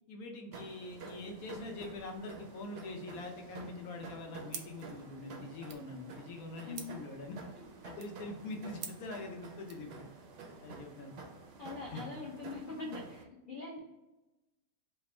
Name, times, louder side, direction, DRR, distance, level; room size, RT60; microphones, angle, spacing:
voice 1, 0.1-7.4 7.8-10.1 10.6-11.1 11.8-12.0, left 2 dB, 75° left, 2 dB, 1.1 m, -44 dB
sound 1, 0.5-13.2, right 4 dB, 65° right, 0.6 m, -50 dB
sound 2, 4.5-9.9, right 6 dB, 90° right, 1.1 m, -51 dB
voice 2, 6.6-7.0 11.6-13.8, left 3 dB, 50° left, -5 dB, 0.6 m, -43 dB
3.3 x 2.1 x 4.1 m, 1.0 s
omnidirectional pair, 1.5 m